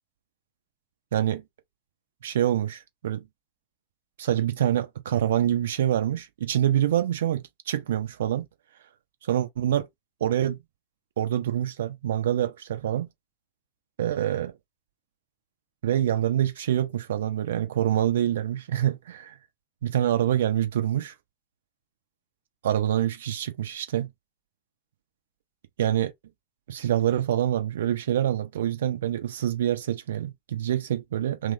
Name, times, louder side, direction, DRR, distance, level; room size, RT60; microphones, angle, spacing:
voice 1, 1.1-1.4 2.2-3.2 4.2-8.5 9.3-9.9 10.2-10.6 11.2-13.1 14.0-14.5 15.8-19.4 19.8-21.1 22.6-24.1 25.8-26.1 26.7-31.5, right 11 dB, 60° right, 0.5 m, -26 dB
3.0 x 2.1 x 3.4 m
figure-of-eight pair, 90°, 0 cm